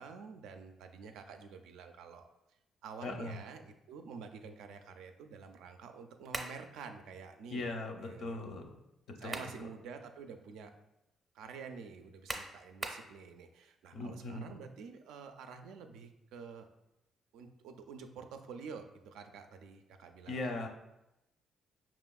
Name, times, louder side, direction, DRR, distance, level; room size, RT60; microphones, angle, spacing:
voice 1, 0.0-2.3 2.8-7.7 8.0-8.4 9.2-10.7 11.3-16.7 17.3-20.4, right 5 dB, 90° right, 6 dB, 0.3 m, -49 dB
voice 2, 3.0-3.4 7.5-8.7 9.2-9.4 13.9-14.6 20.3-20.7, left 2 dB, 65° left, 4 dB, 0.6 m, -39 dB
sound 1, 6.3-6.6 9.0-9.6 10.1-10.2 12.3-13.1, right 2 dB, 15° right, 0.5 m, -40 dB
5.0 x 2.9 x 2.3 m, 0.91 s
cardioid pair, 90°, 0 cm